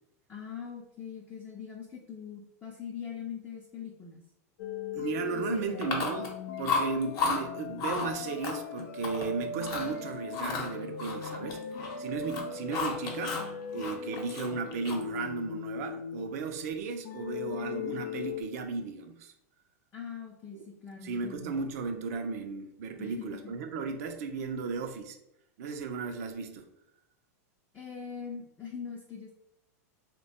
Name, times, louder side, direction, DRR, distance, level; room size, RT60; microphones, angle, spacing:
voice 1, 0.3-4.2 5.3-6.0 19.9-21.5 23.0-23.6 27.7-29.3, left 7 dB, 15° left, -2 dB, 0.5 m, -42 dB
sound 1, 4.6-16.6 17.0-18.4, left 6 dB, 65° left, 0.4 m, -39 dB
voice 2, 4.9-6.3 6.6-13.4 13.7-19.3 20.5-20.6 21.0-25.2 25.6-26.7, right 4 dB, 65° right, 5 dB, 0.5 m, -35 dB
Chewing mastication, 5.8-6.4 6.6-7.4 7.8-8.1 8.4-9.3 9.6-9.9 10.3-12.0 12.2-13.5 13.8-15.2, left 4 dB, 45° left, 0.8 m, -33 dB
2.8 x 2.2 x 4.1 m, 0.79 s
hypercardioid pair, 125°, 9 cm